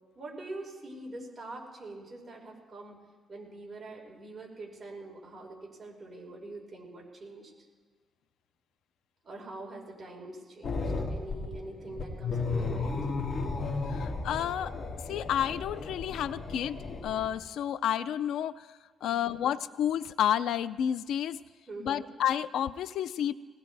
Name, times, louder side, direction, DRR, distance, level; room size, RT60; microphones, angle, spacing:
voice 1, 0.1-2.9 3.3-7.5 9.2-13.1 19.0-19.3 21.7-22.1, right 2 dB, 25° right, -3 dB, 4.9 m, -44 dB
sound 1, 10.6-17.4, left 3 dB, 50° left, 2.1 m, -34 dB
voice 2, 13.9-14.7 15.1-18.7 19.0-21.4 21.8-23.3, left 10 dB, 80° left, 15 dB, 0.4 m, -30 dB
20.0 x 19.0 x 3.4 m, 1.5 s
cardioid pair, 140°, 0 cm